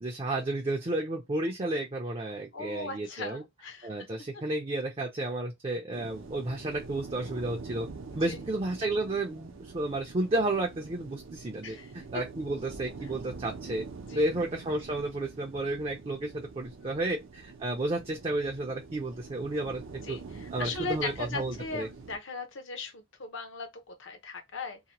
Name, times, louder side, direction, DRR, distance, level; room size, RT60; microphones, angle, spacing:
voice 1, 0.0-3.4 3.8-7.9 8.1-13.8 14.1-19.8 20.1-20.2 20.5-21.9, right 2 dB, 25° right, 0.4 m, -32 dB
voice 2, 2.5-4.1 8.1-8.4 11.6-11.9 14.1-14.3 16.8-17.1 20.1-24.8, left 3 dB, 60° left, 0.7 m, -38 dB
sound 1, 5.9-22.2, right 4 dB, 70° right, 0.6 m, -45 dB
2.8 x 2.1 x 2.8 m
head